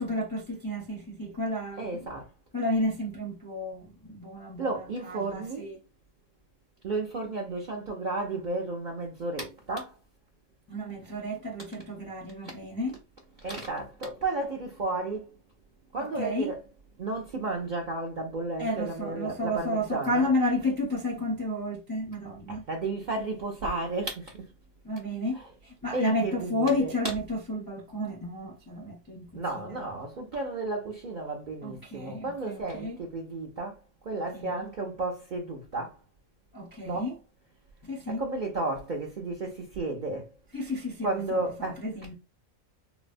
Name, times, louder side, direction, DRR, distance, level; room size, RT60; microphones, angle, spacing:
voice 1, 0.0-2.0 2.5-5.8 10.7-13.0 16.0-16.5 18.6-22.6 24.8-29.8 31.6-33.0 34.3-34.7 36.5-37.1 37.8-38.2 40.5-42.1, left 1 dB, 25° left, 0.5 m, -32 dB
voice 2, 1.8-2.3 4.6-5.7 6.8-9.9 13.4-15.3 15.9-16.6 17.0-20.3 22.5-24.5 25.9-26.9 29.3-33.8 34.0-36.0 36.8-37.1 38.1-40.3 41.0-41.8, right 2 dB, 55° right, 0.5 m, -33 dB
3.9 x 2.0 x 2.5 m
omnidirectional pair, 1.4 m